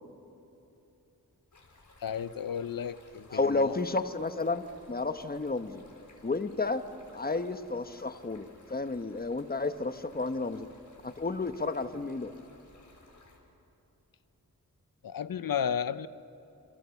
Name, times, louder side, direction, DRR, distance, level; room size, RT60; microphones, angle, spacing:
Stream, 1.5-13.4, left 2 dB, 55° left, 5.1 m, -58 dB
voice 1, 2.0-3.8 15.0-16.1, left 8 dB, 70° left, 0.8 m, -33 dB
voice 2, 3.3-5.8 6.2-6.8 7.1-10.7 11.0-12.3, left 3 dB, 25° left, 1.2 m, -31 dB
29.0 x 27.5 x 7.2 m
wide cardioid pair, 95°, 35 cm